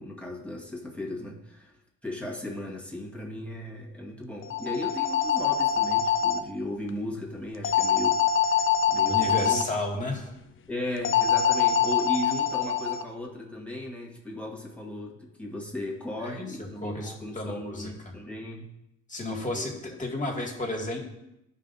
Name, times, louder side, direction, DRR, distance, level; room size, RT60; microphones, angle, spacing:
voice 1, 0.0-1.7 2.0-9.7 10.7-18.7 19.5-19.7, left 2 dB, 5° left, -3 dB, 1.6 m, -36 dB
sound 1, 4.4-6.4 7.6-9.6 11.0-13.0, left 7 dB, 40° left, 0.6 m, -24 dB
voice 2, 9.1-10.3 16.2-16.4 16.8-17.9 19.1-21.0, left 1 dB, 25° left, -1 dB, 2.1 m, -32 dB
13.0 x 5.5 x 2.6 m, 0.87 s
cardioid pair, 90°, 30 cm